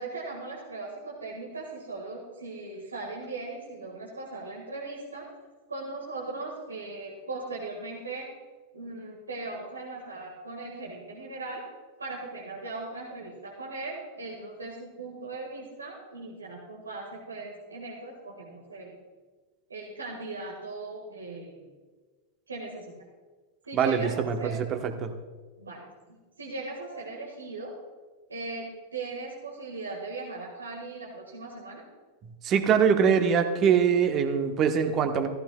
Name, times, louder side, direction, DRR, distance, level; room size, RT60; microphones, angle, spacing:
voice 1, 0.0-5.3 5.7-8.3 8.7-11.6 12.0-19.0 19.7-21.7 22.5-22.9 23.6-24.6 25.6-27.8 28.3-31.8, right 3 dB, 75° right, -2 dB, 1.7 m, -38 dB
voice 2, 23.7-25.1 32.4-35.3, right 7 dB, 30° right, 6 dB, 1.1 m, -23 dB
15.0 x 14.5 x 2.3 m, 1.3 s
figure-of-eight pair, 90°, 0 cm